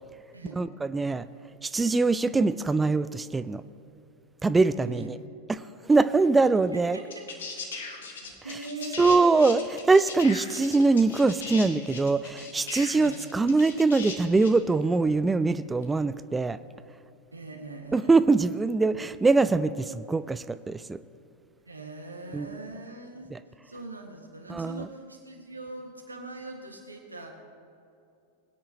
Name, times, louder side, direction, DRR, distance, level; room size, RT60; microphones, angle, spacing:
voice 1, 0.5-1.2 1.6-3.6 4.4-5.2 5.5-7.0 9.0-16.6 17.9-21.0 22.3-22.5 23.3-23.4 24.5-24.9, right 3 dB, 10° right, 14 dB, 0.3 m, -23 dB
voice 2, 4.8-5.1 6.7-7.3 8.2-9.6 12.9-13.2 17.3-18.1 21.7-23.3 23.6-27.3, right 2 dB, 80° right, 2 dB, 1.7 m, -41 dB
sound 1, 6.6-6.7 7.1-14.6 15.8-15.9, left 4 dB, 65° left, 1.7 m, -39 dB
21.0 x 10.0 x 2.9 m, 2.6 s
figure-of-eight pair, 90°, 0 cm